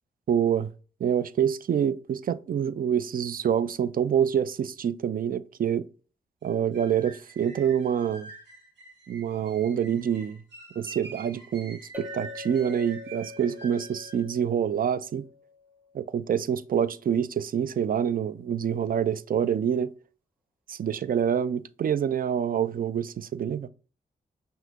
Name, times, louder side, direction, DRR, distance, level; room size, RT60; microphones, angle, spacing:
voice 1, 0.3-0.7 1.0-5.8 6.4-8.3 9.1-10.4 10.8-15.2 15.9-19.9 20.7-23.7, right 8 dB, 55° right, 0.4 m, -26 dB
sound 1, 6.4-14.3, right 3 dB, 80° right, 1.4 m, -47 dB
Chink clink, 11.9-16.2, left 5 dB, 10° right, 1.0 m, -45 dB
5.8 x 2.7 x 2.9 m
supercardioid pair, 40°, 18 cm